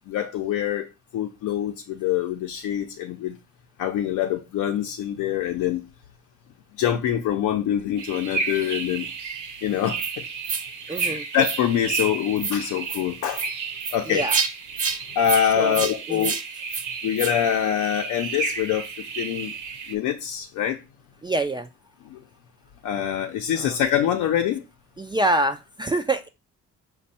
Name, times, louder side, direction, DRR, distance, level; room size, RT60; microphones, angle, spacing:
voice 1, 0.1-3.4 3.8-5.8 6.8-9.1 9.6-10.2 11.0-13.5 13.9-14.2 15.1-16.3 17.0-18.9 19.2-19.5 19.9-20.8 22.0-22.2 22.8-24.6, left 10 dB, 85° left, 0.6 m, -25 dB
sound 1, 8.0-20.0, right 5 dB, 75° right, 0.9 m, -33 dB
sound 2, 10.0-10.1 10.4-10.6 10.9-11.1 11.4-11.6 11.9-12.1 12.4-12.6 12.9-13.0 13.3-13.5 13.8-14.0 14.3-14.5 14.8-15.0 15.2-15.4 15.7-15.9 16.2-16.4 16.7-16.8 17.2-17.3, right 5 dB, 50° right, 1.0 m, -27 dB
voice 2, 10.9-11.3 14.1-14.4 15.6-15.8 16.1-16.3 21.2-21.7 23.6-23.8 25.0-26.3, right 2 dB, 15° right, 0.3 m, -25 dB
5.1 x 2.2 x 4.1 m
cardioid pair, 90°, 30 cm